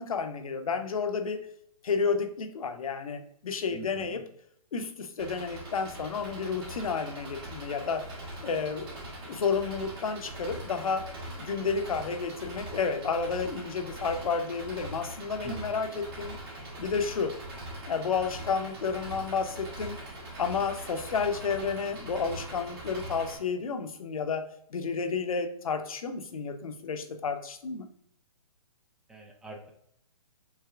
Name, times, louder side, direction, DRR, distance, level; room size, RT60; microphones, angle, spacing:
voice 1, 0.0-1.5 1.8-4.2 4.7-8.0 8.4-8.9 9.3-11.1 11.4-16.4 16.8-17.3 17.9-20.0 20.4-24.5 24.7-27.9, left 5 dB, 60° left, 6 dB, 0.7 m, -31 dB
voice 2, 3.7-4.2 15.4-15.8 29.1-29.7, equal, 5° right, 2 dB, 0.3 m, -43 dB
Engine, 5.2-23.4, right 1 dB, 40° right, 1.5 m, -42 dB
6.7 x 2.7 x 2.3 m, 0.69 s
figure-of-eight pair, 130°, 20 cm